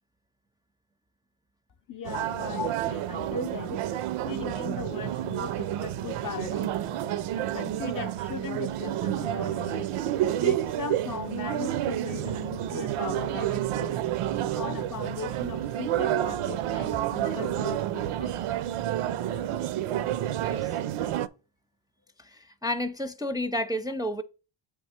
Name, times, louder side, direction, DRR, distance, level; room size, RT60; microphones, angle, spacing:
voice 1, 1.9-3.9 4.2-6.7 7.4-10.0 10.4-14.0 14.6-18.3, left 7 dB, 40° left, 0.6 m, -38 dB
sound 1, 2.0-21.3, right 12 dB, 80° right, 0.6 m, -30 dB
voice 2, 22.2-24.2, left 1 dB, 10° right, 0.5 m, -31 dB
7.4 x 3.6 x 4.2 m
cardioid pair, 55°, 50 cm